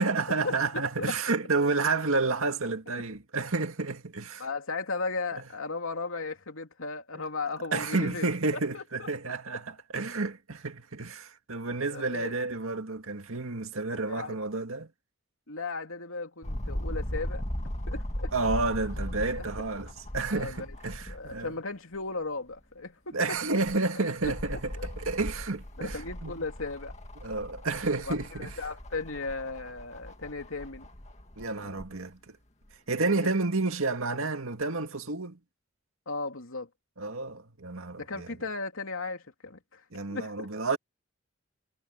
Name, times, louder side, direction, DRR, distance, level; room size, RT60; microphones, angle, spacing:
voice 1, 0.0-4.5 7.7-14.9 18.3-21.5 23.1-26.3 27.2-28.6 31.4-32.2 32.9-35.4 37.0-38.3 39.9-40.8, right 3 dB, 85° right, 2.1 m, -30 dB
voice 2, 4.4-8.3 8.5-9.1 11.9-12.3 14.1-14.4 15.5-17.4 17.9-18.3 19.4-19.5 20.3-20.8 21.1-23.4 23.9-24.3 24.8-24.9 25.8-27.0 28.1-30.9 31.6-31.8 33.0-33.3 36.1-36.7 38.0-39.8 40.1-40.8, left 3 dB, 80° left, 2.9 m, -36 dB
sound 1, 16.4-21.5 21.9-22.0 23.4-31.9 32.7-32.8, equal, 30° left, 2.1 m, -38 dB
head